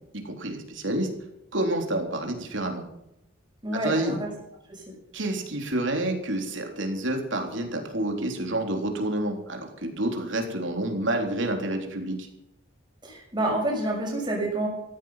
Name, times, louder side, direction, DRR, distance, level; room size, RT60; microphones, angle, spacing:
voice 1, 0.1-1.1 1.5-2.8 3.8-4.2 5.1-12.3, right 1 dB, 65° right, 3 dB, 3.7 m, -28 dB
voice 2, 3.6-4.3 4.7-4.9 13.0-14.7, right 1 dB, 20° right, -1 dB, 6.2 m, -28 dB
16.0 x 14.5 x 5.8 m, 0.84 s
head